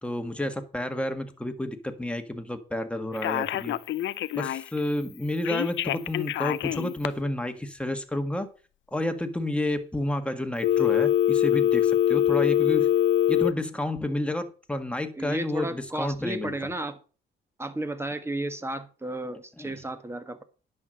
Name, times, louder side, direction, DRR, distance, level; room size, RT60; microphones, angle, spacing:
voice 1, 0.0-3.8 4.3-8.5 8.9-12.9 13.3-16.5 19.6-19.8, left 1 dB, 5° left, 1.7 m, -30 dB
Telephone, 3.1-4.8 5.4-7.1 10.6-13.5, left 11 dB, 70° left, 0.6 m, -24 dB
voice 2, 15.1-17.0 17.6-20.4, right 1 dB, 10° right, 1.5 m, -33 dB
10.5 x 6.0 x 6.5 m
cardioid pair, 90°, 20 cm